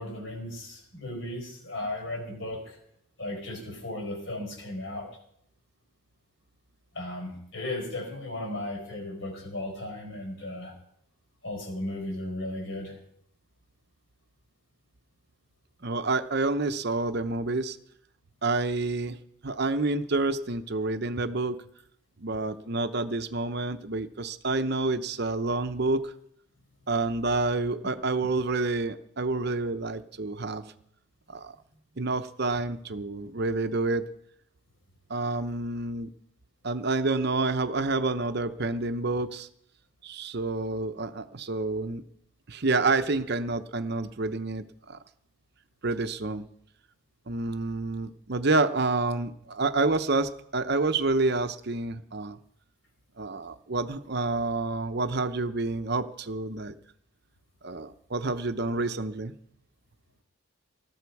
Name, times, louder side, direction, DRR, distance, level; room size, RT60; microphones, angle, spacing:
voice 1, 0.0-2.8 3.2-5.1 6.9-10.7 11.4-12.9, left 1 dB, 60° left, 3 dB, 4.6 m, -35 dB
voice 2, 15.8-17.8 18.4-19.2 19.4-21.6 22.2-26.1 26.9-30.6 31.3-31.5 32.0-34.1 35.1-36.1 36.6-39.5 40.0-42.0 42.5-45.0 45.8-46.4 47.3-52.4 53.2-56.7 57.6-59.3, right 3 dB, 50° right, 10 dB, 0.8 m, -28 dB
20.0 x 14.0 x 4.7 m, 0.71 s
head